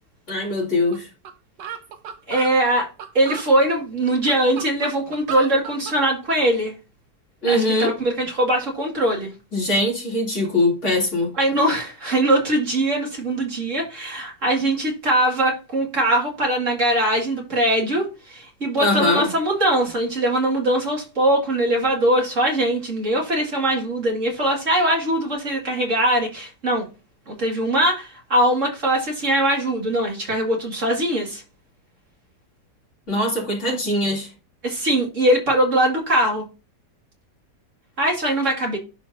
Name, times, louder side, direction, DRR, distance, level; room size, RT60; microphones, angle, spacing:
voice 1, 0.3-1.1 7.4-8.0 9.5-11.3 18.8-19.2 33.1-34.3, left 1 dB, 45° left, 3.2 m, -21 dB
sound 1, 0.9-1.0 1.3-1.4 1.6-3.5 4.0-6.0, right 7 dB, 85° right, 1.7 m, -34 dB
voice 2, 2.3-2.9 3.1-6.7 7.5-9.3 11.3-26.8 27.3-31.4 34.6-36.4 38.0-38.8, right 1 dB, 45° right, 2.7 m, -21 dB
11.5 x 4.6 x 2.7 m
omnidirectional pair, 1.9 m